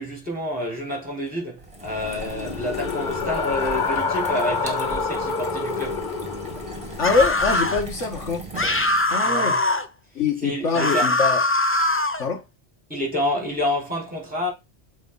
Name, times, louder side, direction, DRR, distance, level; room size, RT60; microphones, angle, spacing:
voice 1, 0.0-6.1 9.2-9.6 10.4-11.1 12.9-14.5, left 1 dB, 5° right, 4.3 m, -28 dB
sound 1, 1.6-9.2, right 1 dB, 25° right, 2.1 m, -37 dB
sound 2, 1.9-7.0, left 4 dB, 50° left, 0.8 m, -27 dB
voice 2, 7.0-8.4 9.1-9.6 10.2-11.4 12.2-12.4, left 4 dB, 85° left, 1.8 m, -23 dB
sound 3, 7.0-7.8 8.6-9.9 10.7-12.2, left 2 dB, 20° left, 0.4 m, -22 dB
7.3 x 4.2 x 5.4 m
omnidirectional pair, 1.2 m